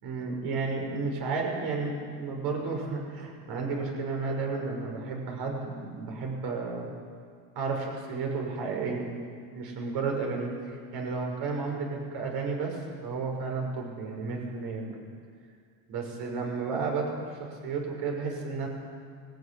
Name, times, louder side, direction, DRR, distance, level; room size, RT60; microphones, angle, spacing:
voice 1, 0.0-6.9 7.5-15.1 15.9-18.7, right 4 dB, 60° right, 1 dB, 6.1 m, -32 dB
20.5 x 14.5 x 10.0 m, 2.2 s
cardioid pair, 135°, 43 cm